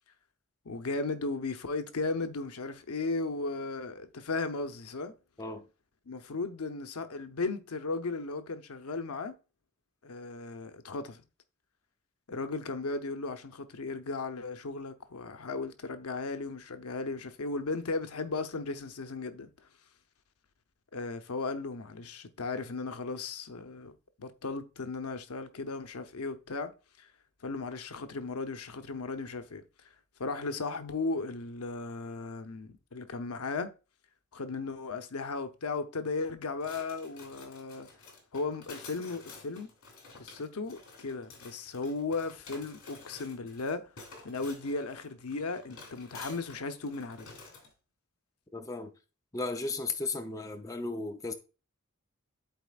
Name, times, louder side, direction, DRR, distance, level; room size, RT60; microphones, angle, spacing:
voice 1, 0.6-5.1 6.1-9.3 10.0-11.2 12.3-19.5 20.9-23.9 24.2-26.7 27.0-27.1 27.4-29.6 30.2-33.7 34.3-37.9 38.3-39.7 40.1-43.9 44.2-47.3, left 3 dB, 80° left, 0.8 m, -36 dB
sound 1, 36.6-47.7, left 3 dB, 65° left, 2.5 m, -51 dB
voice 2, 48.5-48.9 49.3-51.3, left 3 dB, 15° left, 0.5 m, -35 dB
11.5 x 4.3 x 2.4 m
head